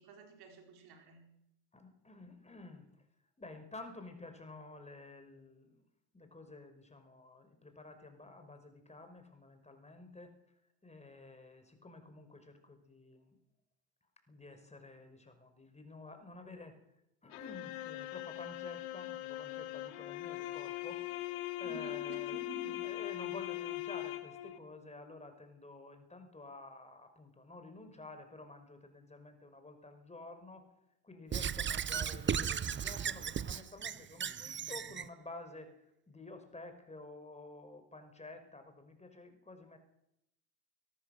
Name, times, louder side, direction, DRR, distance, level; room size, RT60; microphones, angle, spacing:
voice 1, 0.0-1.3 21.6-23.0, right 2 dB, 50° right, 3 dB, 4.7 m, -51 dB
voice 2, 1.7-2.9 3.4-5.8 6.1-10.3 10.8-13.4 14.3-16.8 17.2-30.7 31.0-39.8, left 2 dB, 15° left, 8 dB, 5.2 m, -51 dB
sound 1, 17.3-24.6, left 16 dB, 65° left, 2.1 m, -41 dB
Squeak / Writing, 31.3-35.1, right 8 dB, 25° right, 1.0 m, -36 dB
23.5 x 18.5 x 6.6 m, 0.82 s
figure-of-eight pair, 65°, 47 cm